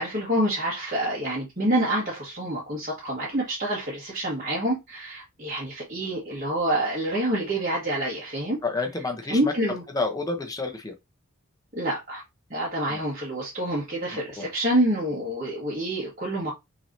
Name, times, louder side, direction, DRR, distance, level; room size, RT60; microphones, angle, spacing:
voice 1, 0.0-8.6 9.3-9.8 11.7-12.2 12.5-16.5, right 1 dB, 35° right, 1.6 m, -27 dB
voice 2, 8.6-9.5 9.9-10.9 12.9-13.0 14.4-14.5, left 3 dB, 15° left, 0.8 m, -29 dB
6.0 x 3.3 x 2.7 m
head